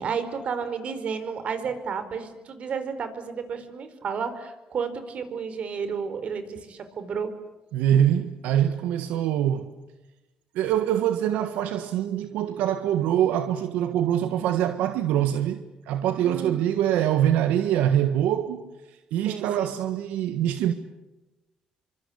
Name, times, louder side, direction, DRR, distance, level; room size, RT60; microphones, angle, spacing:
voice 1, 0.0-7.3 16.2-16.7 19.2-19.7, right 6 dB, 55° right, 4.6 m, -32 dB
voice 2, 7.7-9.7 10.5-18.7 19.1-20.7, right 10 dB, 90° right, 1.5 m, -24 dB
27.5 x 24.5 x 8.7 m
cardioid pair, 95°, 3 cm